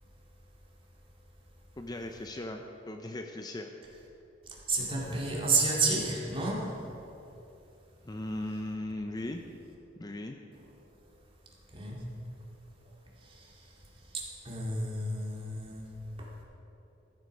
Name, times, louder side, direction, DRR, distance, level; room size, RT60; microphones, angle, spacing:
voice 1, 1.8-3.7 8.0-9.4 10.0-10.4, left 1 dB, 20° left, 4 dB, 0.5 m, -38 dB
voice 2, 4.5-6.8 11.7-12.1 13.2-15.9 16.2-16.3, right 3 dB, 30° right, -3 dB, 2.2 m, -31 dB
14.0 x 8.1 x 5.2 m, 2.9 s
head